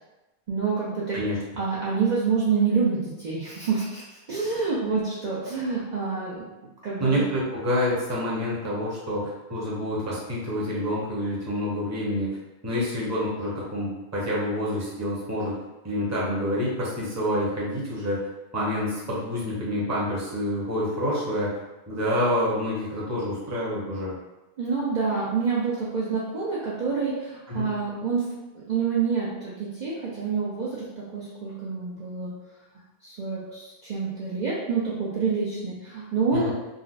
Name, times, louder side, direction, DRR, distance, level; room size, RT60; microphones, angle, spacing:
voice 1, 0.5-1.2 1.6-7.2 24.6-32.4 33.0-36.5, right 5 dB, 55° right, -7 dB, 0.6 m, -27 dB
voice 2, 7.0-12.4 12.6-15.6 15.8-18.3 18.5-21.6 21.9-24.1 27.5-27.7 36.3-36.5, equal, 15° right, -6 dB, 0.7 m, -27 dB
3.9 x 2.0 x 2.4 m, 1.0 s
omnidirectional pair, 1.1 m